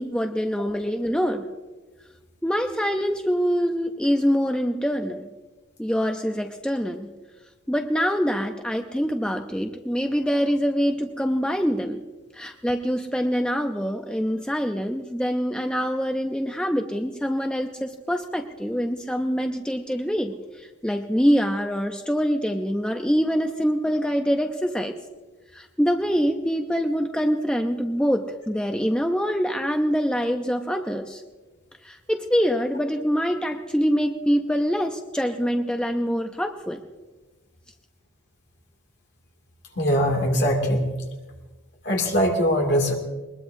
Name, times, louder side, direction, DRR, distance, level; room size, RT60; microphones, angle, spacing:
voice 1, 0.0-1.4 2.4-5.3 5.8-7.1 7.7-12.0 12.3-25.0 25.5-31.2 31.8-36.8, equal, 5° left, 4 dB, 0.6 m, -25 dB
voice 2, 39.8-40.9 41.8-43.0, equal, 55° left, 2 dB, 2.5 m, -21 dB
21.0 x 21.0 x 2.7 m, 1.2 s
head